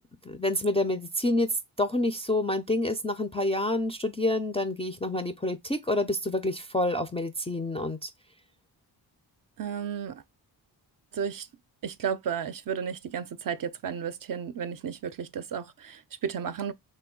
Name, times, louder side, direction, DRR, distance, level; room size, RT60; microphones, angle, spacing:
voice 1, 0.2-8.1, left 1 dB, 15° left, 0.3 m, -28 dB
voice 2, 9.6-10.2 11.1-11.5 11.8-16.7, right 7 dB, 50° right, 0.4 m, -33 dB
3.2 x 2.2 x 3.6 m
cardioid pair, 60°, 46 cm